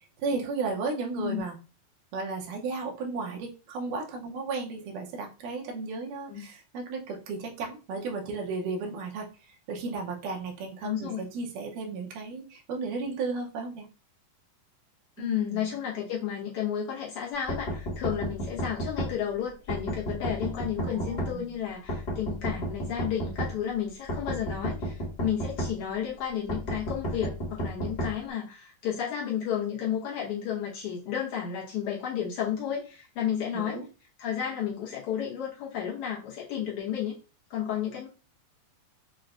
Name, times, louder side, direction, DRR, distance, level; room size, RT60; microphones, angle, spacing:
voice 1, 0.2-1.6 2.1-9.3 9.7-13.9 15.2-15.7 20.8-21.5 33.5-33.8, right 4 dB, 80° right, 1 dB, 2.4 m, -34 dB
voice 2, 10.8-11.2 15.2-33.8 34.2-37.1 37.5-38.1, left 9 dB, 85° left, -3 dB, 1.2 m, -32 dB
sound 1, 17.5-19.1 19.7-21.3 21.9-23.5 24.1-25.7 26.5-28.1, right 1 dB, 45° left, 0.8 m, -31 dB
6.4 x 2.1 x 2.5 m, 0.34 s
omnidirectional pair, 3.7 m